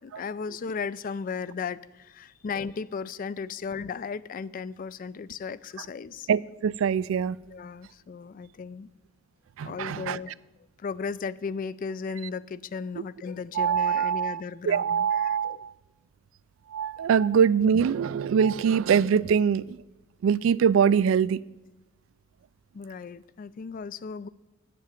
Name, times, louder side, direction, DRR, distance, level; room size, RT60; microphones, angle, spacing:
voice 1, 0.0-6.3 7.5-8.9 9.6-10.4 10.8-15.6 22.7-24.3, left 5 dB, 45° left, 18 dB, 0.3 m, -35 dB
voice 2, 6.3-7.4 9.6-10.2 13.6-15.7 16.7-19.8 20.2-21.4, right 7 dB, 75° right, 19 dB, 0.3 m, -23 dB
8.7 x 7.6 x 8.3 m, 1.1 s
head